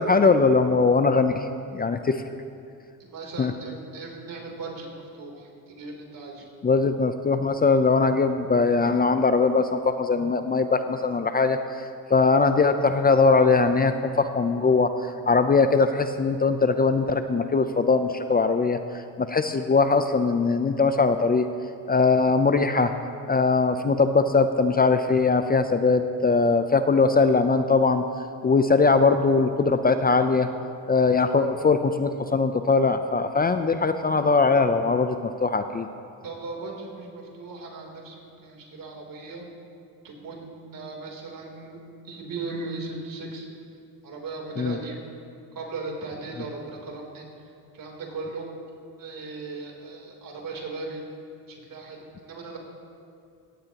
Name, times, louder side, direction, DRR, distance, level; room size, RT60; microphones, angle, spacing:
voice 1, 0.0-2.2 3.4-3.5 6.6-21.5 21.9-22.9 23.3-28.1 28.4-30.5 30.9-35.9 44.6-44.8, left 4 dB, 25° left, 8 dB, 0.6 m, -21 dB
voice 2, 3.0-4.9 5.1-6.4 36.2-39.4 40.0-43.5 44.0-45.0 45.6-47.2 47.7-48.5 49.0-51.0 51.7-52.6, right 3 dB, 55° right, 0 dB, 3.4 m, -37 dB
16.5 x 16.0 x 3.0 m, 2.5 s
supercardioid pair, 80°, 39 cm